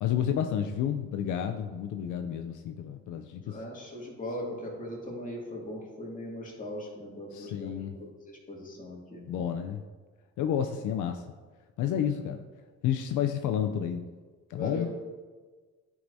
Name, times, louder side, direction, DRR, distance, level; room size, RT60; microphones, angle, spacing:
voice 1, 0.0-3.6 7.3-7.9 9.3-9.8 10.4-11.4 11.8-12.5 12.8-14.1 14.5-14.9, left 9 dB, 80° left, 5 dB, 0.5 m, -30 dB
voice 2, 3.4-9.2 14.5-14.9, left 1 dB, 25° left, -3 dB, 2.2 m, -39 dB
10.0 x 4.7 x 2.7 m, 1.4 s
cardioid pair, 90°, 30 cm